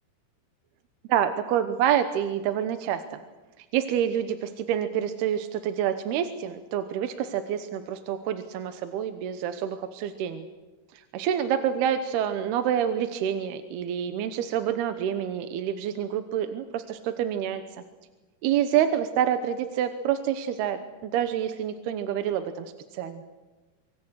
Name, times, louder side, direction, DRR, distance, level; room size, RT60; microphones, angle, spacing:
voice 1, 1.1-3.2 3.6-10.5 11.1-17.6 18.4-23.2, right 9 dB, 80° right, 9 dB, 3.0 m, -27 dB
26.0 x 24.5 x 6.4 m, 1.2 s
omnidirectional pair, 4.6 m